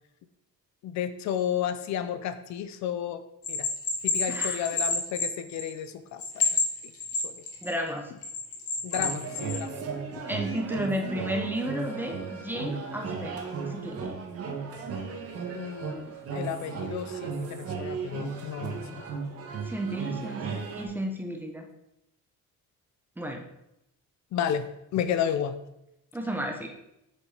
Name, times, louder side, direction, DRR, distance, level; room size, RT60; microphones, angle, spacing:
voice 1, 0.8-3.2 3.5-3.7 4.0-6.6 7.2-7.3 8.8-9.8 15.5-19.0 24.3-24.7 24.9-25.5, left 9 dB, 65° left, 11 dB, 0.7 m, -32 dB
Bell, 3.4-5.9 6.2-7.7 8.2-9.6, left 4 dB, 50° left, 2.2 m, -28 dB
voice 2, 4.3-4.7 7.6-8.1 10.3-14.1 19.6-21.7 23.2-23.4 26.1-26.7, right 1 dB, 5° right, 3 dB, 0.9 m, -33 dB
sound 1, 8.9-20.8, right 5 dB, 50° right, 1.5 m, -35 dB
7.7 x 6.9 x 4.9 m, 0.84 s
cardioid pair, 175°, 30 cm